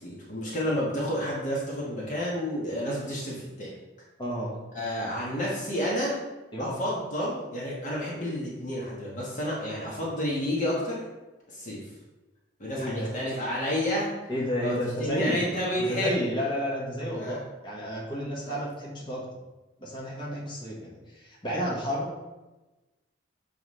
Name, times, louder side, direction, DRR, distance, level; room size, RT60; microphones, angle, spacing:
voice 1, 0.0-3.7 4.7-6.2 6.6-11.0 11.5-11.8 12.6-14.1 14.6-16.2 17.1-17.4 18.4-18.6, equal, 40° left, -5 dB, 1.4 m, -30 dB
voice 2, 4.2-4.6 6.5-6.7 12.8-13.1 14.3-15.5 15.8-19.2 19.8-22.1, equal, 25° left, -6 dB, 1.5 m, -31 dB
7.3 x 4.6 x 3.2 m, 1.1 s
head